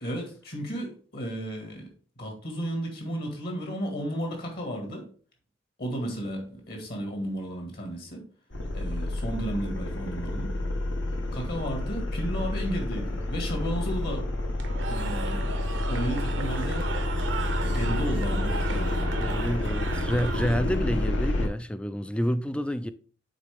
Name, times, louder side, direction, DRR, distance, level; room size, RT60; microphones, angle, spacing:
voice 1, 0.0-1.9 2.2-5.0 5.8-8.2 8.7-10.6 11.3-14.3 14.9-15.5 15.9-16.9 17.7-19.1, right 1 dB, 55° left, 1.9 m, -33 dB
sound 1, 8.5-21.5, left 1 dB, 75° left, 1.3 m, -29 dB
Cheering / Crowd, 14.6-20.9, right 5 dB, 70° right, 0.8 m, -36 dB
voice 2, 19.2-22.9, equal, 5° left, 0.3 m, -29 dB
8.8 x 3.8 x 3.5 m
head